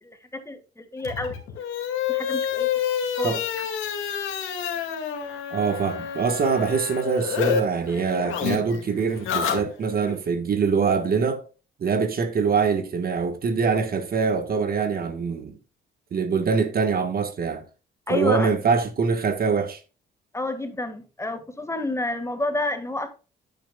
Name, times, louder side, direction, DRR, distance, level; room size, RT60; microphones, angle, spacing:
voice 1, 0.0-1.6 2.1-2.7 3.2-3.4 18.1-18.5 20.3-23.1, left 2 dB, 15° left, 1.7 m, -29 dB
sound 1, 1.0-7.6 7.9-10.1, left 8 dB, 85° left, 2.1 m, -28 dB
voice 2, 5.5-11.5 11.8-15.6 16.1-17.6 18.1-19.8, right 5 dB, 50° right, 1.4 m, -24 dB
9.1 x 9.1 x 2.3 m
cardioid pair, 90°, 20 cm